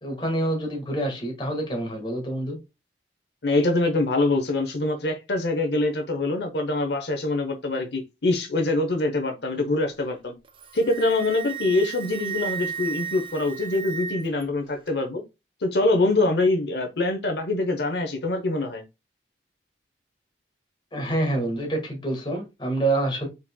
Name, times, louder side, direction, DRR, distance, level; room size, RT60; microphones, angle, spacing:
voice 1, 0.0-2.6 20.9-23.3, right 1 dB, 25° left, 1.6 m, -27 dB
voice 2, 3.4-10.3 10.7-15.2 15.6-18.8, left 2 dB, 75° left, 0.9 m, -24 dB
Wind instrument woodwind instrument, 10.5-14.4, right 7 dB, 30° right, 0.4 m, -34 dB
5.0 x 4.2 x 2.2 m
head